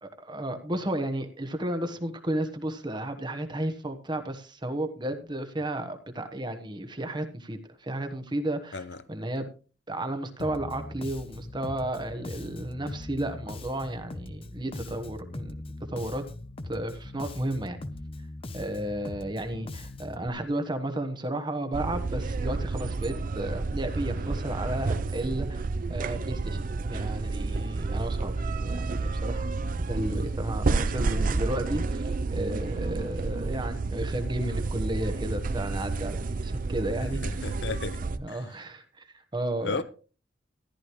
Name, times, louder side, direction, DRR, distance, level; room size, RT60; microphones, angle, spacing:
voice 1, 0.0-9.5 9.9-15.5 15.9-16.2 16.7-17.8 18.5-26.6 26.9-29.5 29.8-36.2 36.4-37.6 38.0-39.1 39.3-39.8, right 1 dB, 25° right, 1.2 m, -33 dB
Bass guitar, 10.4-20.3, left 2 dB, 30° left, 0.7 m, -40 dB
sound 1, 21.7-38.2, right 3 dB, 50° right, 0.5 m, -30 dB
voice 2, 37.2-38.0 38.3-38.4 39.6-39.8, left 4 dB, 70° left, 0.7 m, -33 dB
14.5 x 11.5 x 3.1 m
head